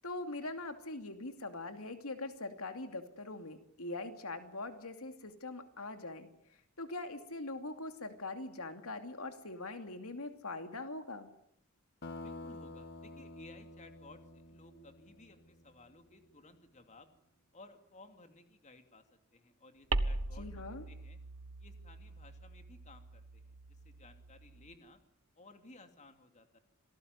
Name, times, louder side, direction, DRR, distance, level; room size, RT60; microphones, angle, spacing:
voice 1, 0.0-6.3 6.8-11.3 20.4-20.8, left 2 dB, 80° left, 7 dB, 2.7 m, -42 dB
sound 1, 12.0-16.3, left 2 dB, 50° left, 1.7 m, -49 dB
voice 2, 12.2-17.1 17.5-21.2 21.6-25.0 25.3-26.6, left 2 dB, 35° left, 7 dB, 2.9 m, -58 dB
sound 2, 19.9-24.8, right 2 dB, 70° right, 1.3 m, -40 dB
27.5 x 19.0 x 9.8 m, 0.71 s
head